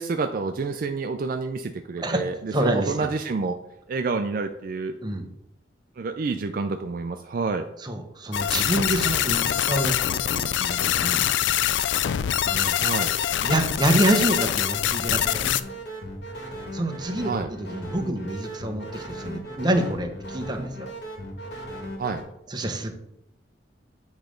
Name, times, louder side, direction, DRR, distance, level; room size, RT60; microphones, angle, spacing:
voice 1, 0.0-3.6 3.9-4.9 6.0-7.6 12.8-13.1 17.2-17.5 22.0-22.2, right 4 dB, 50° right, 7 dB, 0.4 m, -28 dB
voice 2, 2.5-3.1 5.0-5.3 7.8-11.3 12.4-12.8 13.4-15.5 16.7-20.9 22.5-22.9, right 1 dB, 25° right, 5 dB, 0.7 m, -27 dB
sound 1, 8.3-15.6, left 11 dB, 85° left, 0.3 m, -24 dB
sound 2, 14.7-22.2, equal, 70° left, 1.6 m, -37 dB
8.1 x 3.2 x 5.1 m, 0.82 s
head